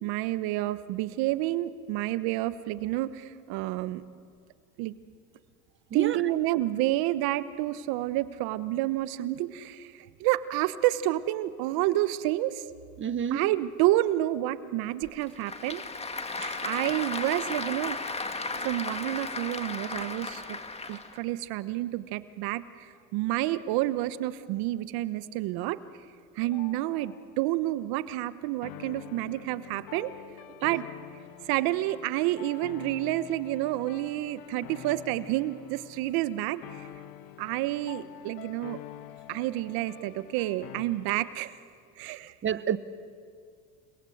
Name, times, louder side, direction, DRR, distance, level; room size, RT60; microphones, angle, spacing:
voice 1, 0.0-4.0 4.8-4.9 5.9-12.6 13.3-15.8 16.6-18.0 18.5-20.6 20.9-25.8 26.4-30.1 30.6-30.9 31.5-36.9 37.4-38.8 39.3-41.6 42.0-42.3, right 16 dB, 70° right, 1.1 m, -29 dB
voice 2, 5.9-6.2 13.0-13.5 16.4-16.6 42.4-42.8, right 9 dB, 30° right, 1.1 m, -29 dB
Applause / Crowd, 15.0-21.2, left 3 dB, 15° left, 1.7 m, -35 dB
sound 1, 26.4-40.8, left 13 dB, 65° left, 1.5 m, -47 dB
29.0 x 21.0 x 8.0 m
supercardioid pair, 95°, 38 cm